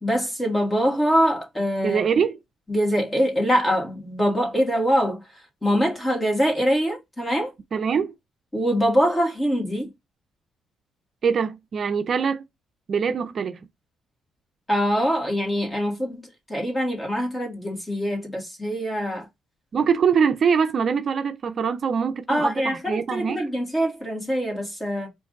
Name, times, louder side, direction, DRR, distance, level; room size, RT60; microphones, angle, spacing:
voice 1, 0.0-2.0 2.7-5.2 5.6-7.5 8.5-9.9 14.7-19.3 22.3-25.1, equal, 15° left, 1.9 m, -23 dB
voice 2, 1.8-2.3 7.7-8.1 11.2-12.4 12.9-13.7 19.7-23.4, right 6 dB, 50° right, 0.4 m, -23 dB
4.8 x 2.6 x 3.9 m
cardioid pair, 90°, 0 cm